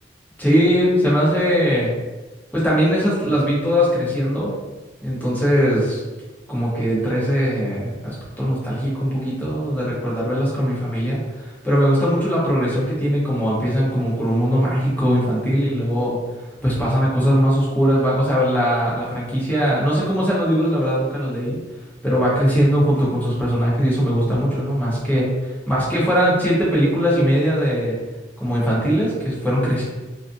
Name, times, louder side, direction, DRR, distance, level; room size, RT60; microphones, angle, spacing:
voice 1, 0.4-1.9 2.5-4.5 5.0-6.0 6.5-16.2 16.6-21.6 22.0-28.0 28.4-29.8, equal, 10° left, -7 dB, 0.7 m, -20 dB
2.5 x 2.4 x 2.4 m, 1.2 s
head